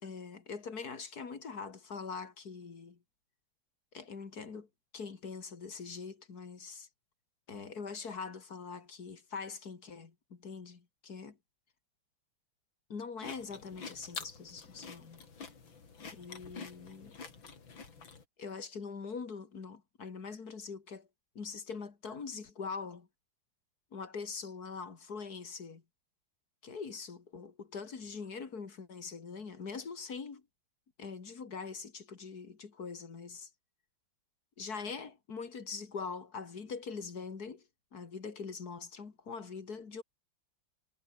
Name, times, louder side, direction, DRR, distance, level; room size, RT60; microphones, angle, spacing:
voice 1, 0.0-3.0 3.9-4.7 4.9-6.9 7.5-11.3 12.9-15.3 16.1-17.2 18.4-21.1 21.3-23.1 23.9-25.8 26.6-30.4 31.0-33.5 34.6-40.0, left 5 dB, 50° left, 2.8 m, -43 dB
sound 1, 13.2-18.2, left 5 dB, 75° left, 3.8 m, -47 dB
omnidirectional pair, 2.1 m